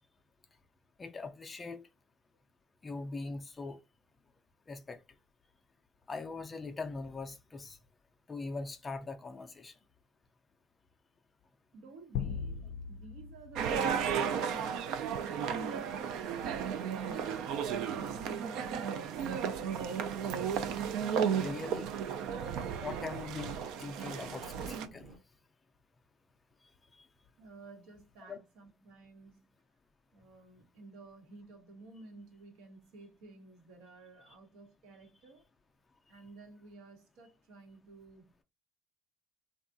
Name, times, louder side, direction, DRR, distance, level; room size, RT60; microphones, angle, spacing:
voice 1, 1.0-1.9 2.8-3.8 4.7-5.0 6.1-7.8 8.3-9.7 21.3-21.9 22.8-25.1 26.9-27.1 28.3-28.4, left 3 dB, 15° left, 0.4 m, -41 dB
voice 2, 11.7-16.4 16.9-19.8 27.4-29.5 30.1-35.4 36.1-38.4, right 2 dB, 90° right, 1.1 m, -51 dB
sound 1, 12.1-14.7, left 7 dB, 90° left, 0.3 m, -40 dB
sound 2, 13.6-24.9, right 7 dB, 65° right, 0.3 m, -34 dB
sound 3, 20.2-25.2, right 4 dB, 30° right, 0.6 m, -56 dB
3.5 x 2.3 x 2.5 m
cardioid pair, 180°, 0 cm